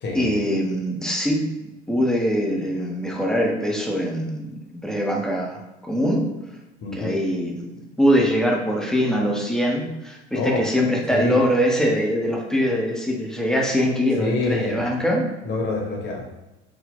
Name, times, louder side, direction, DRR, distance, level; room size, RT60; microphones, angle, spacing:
voice 1, 0.1-1.5 1.9-6.2 6.9-7.7 8.0-15.3, equal, ahead, -2 dB, 0.4 m, -23 dB
voice 2, 6.8-7.1 10.3-10.7 11.1-11.4 14.2-14.8 15.4-16.5, left 3 dB, 30° left, 1 dB, 0.8 m, -26 dB
3.8 x 2.0 x 3.6 m, 0.97 s
figure-of-eight pair, 75°, 35 cm